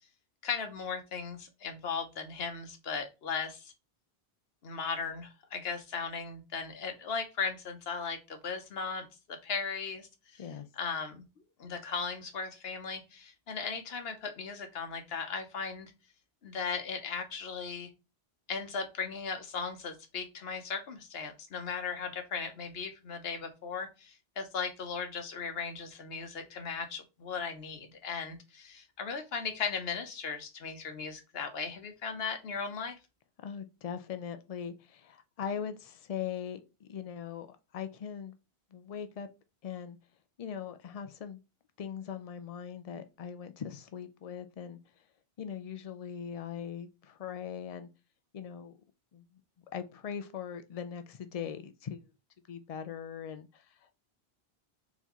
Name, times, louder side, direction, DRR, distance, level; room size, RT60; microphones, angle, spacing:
voice 1, 0.4-3.7 4.6-10.5 10.8-11.2 11.6-15.9 16.4-17.9 18.5-32.9, left 5 dB, 70° left, 1.1 m, -37 dB
voice 2, 33.4-38.3 38.7-39.3 39.6-40.0 40.4-41.4 41.8-44.8 45.4-47.9 48.3-48.7 49.1-49.3 49.7-52.1 52.5-54.0, left 8 dB, 45° left, 0.5 m, -40 dB
4.1 x 4.0 x 3.0 m
omnidirectional pair, 1.1 m